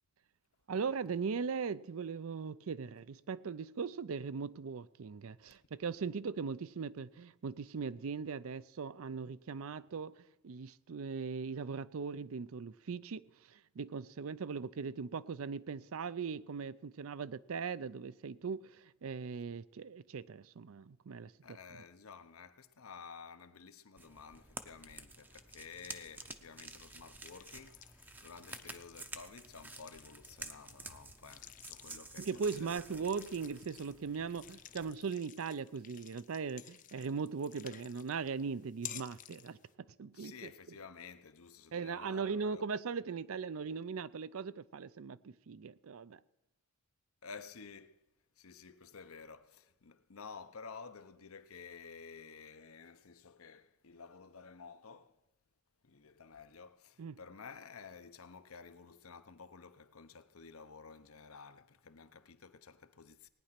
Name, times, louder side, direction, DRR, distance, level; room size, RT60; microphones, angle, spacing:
voice 1, 0.7-21.3 21.7-21.8 32.2-40.5 41.7-46.2 57.0-57.2, right 5 dB, 80° right, 0.5 m, -39 dB
voice 2, 21.4-33.0 40.1-42.6 47.2-48.0 48.4-55.1 55.8-63.3, left 5 dB, 85° left, 0.8 m, -52 dB
sound 1, 24.0-35.0, right 2 dB, 10° right, 0.6 m, -51 dB
sound 2, 26.2-39.7, left 11 dB, 35° left, 0.5 m, -54 dB
18.0 x 9.7 x 5.8 m
head